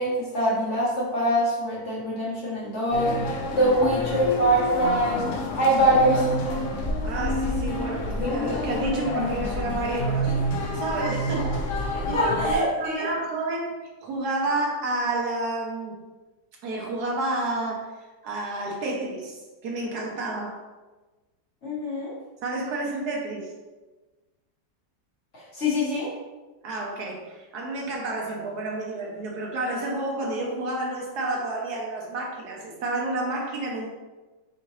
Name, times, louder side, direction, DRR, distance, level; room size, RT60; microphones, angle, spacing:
voice 1, 0.0-5.2 5.6-6.3 11.9-13.1 21.6-22.1 25.3-26.1, right 1 dB, 50° left, -6 dB, 1.0 m, -24 dB
sound 1, 2.9-12.5, left 1 dB, 75° left, 0.6 m, -28 dB
voice 2, 7.0-10.3 10.7-16.0 16.6-17.9 18.2-20.6 22.4-23.5 26.6-33.9, right 2 dB, 70° right, -1 dB, 1.1 m, -30 dB
4.1 x 3.7 x 2.9 m, 1.2 s
omnidirectional pair, 1.9 m